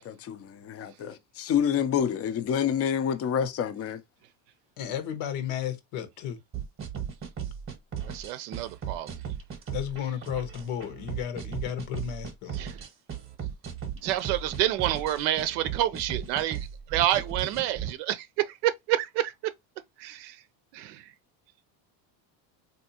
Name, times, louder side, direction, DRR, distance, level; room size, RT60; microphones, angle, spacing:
voice 1, 0.0-4.0, left 8 dB, 30° left, 0.4 m, -28 dB
voice 2, 4.8-6.4 9.7-12.6, left 9 dB, 75° left, 1.1 m, -33 dB
sound 1, 6.5-17.9, right 8 dB, 25° right, 0.8 m, -36 dB
voice 3, 8.0-9.2 12.5-12.8 14.0-19.3 20.0-20.4 20.7-21.1, right 13 dB, 85° right, 0.6 m, -28 dB
3.4 x 2.7 x 2.7 m
cardioid pair, 125°, 48 cm